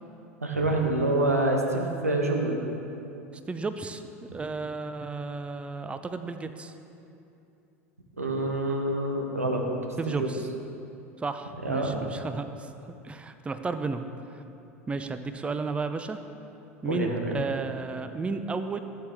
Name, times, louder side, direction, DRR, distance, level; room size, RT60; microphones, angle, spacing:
voice 1, 0.4-2.6 8.2-9.6 10.1-10.3 11.6-12.0 16.9-17.4, right 2 dB, 85° right, 1 dB, 1.1 m, -26 dB
voice 2, 3.5-4.0 4.3-6.7 10.0-10.4 11.2-12.7 13.0-14.0 14.3-14.4 14.9-16.2 16.8-18.8, right 4 dB, 15° right, 9 dB, 0.5 m, -33 dB
14.0 x 8.3 x 3.5 m, 2.7 s
figure-of-eight pair, 75°, 8 cm